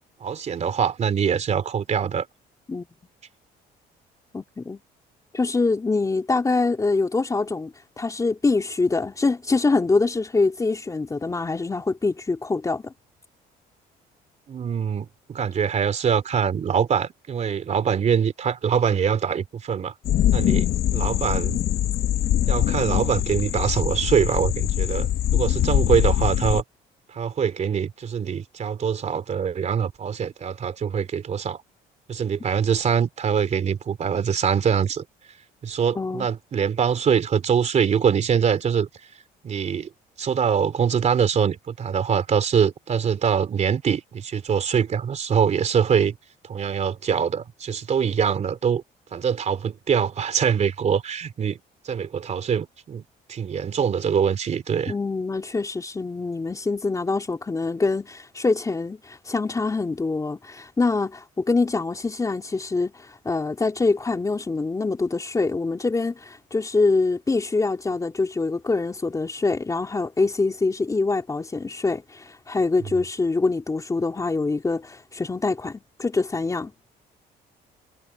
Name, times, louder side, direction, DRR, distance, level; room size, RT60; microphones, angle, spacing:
voice 1, 0.2-2.3 14.5-19.9 20.3-21.6 22.5-26.6 27.1-31.6 32.1-35.0 35.6-38.9 39.4-39.9 40.2-46.2 46.4-48.8 49.1-51.6 51.8-54.9, right 7 dB, 45° right, 3.3 m, -23 dB
voice 2, 4.3-4.8 5.3-12.9 35.9-36.3 54.9-76.9, left 3 dB, 20° left, 3.4 m, -24 dB
sound 1, 20.0-26.6, left 12 dB, 65° left, 1.3 m, -23 dB
cardioid pair, 110°, 17 cm